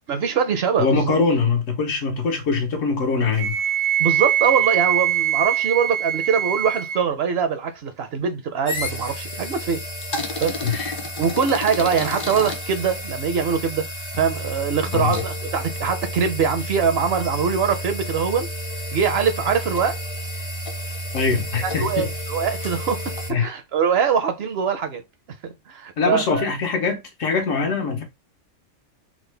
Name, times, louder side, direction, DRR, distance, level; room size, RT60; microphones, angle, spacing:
voice 1, 0.1-1.1 4.0-9.8 10.4-10.6 11.2-13.9 14.2-18.5 18.9-20.0 21.6-23.1 23.4-25.0 25.4-26.5, right 6 dB, 60° right, 0.7 m, -23 dB
voice 2, 0.8-3.5 10.6-10.9 14.9-15.2 21.1-22.1 23.3-23.5 26.0-28.0, left 4 dB, 80° left, 1.3 m, -22 dB
Wind instrument woodwind instrument, 3.4-7.0, right 11 dB, 80° right, 1.3 m, -22 dB
sound 1, 8.7-23.3, equal, 35° left, 0.5 m, -31 dB
3.7 x 2.1 x 3.2 m
omnidirectional pair, 1.3 m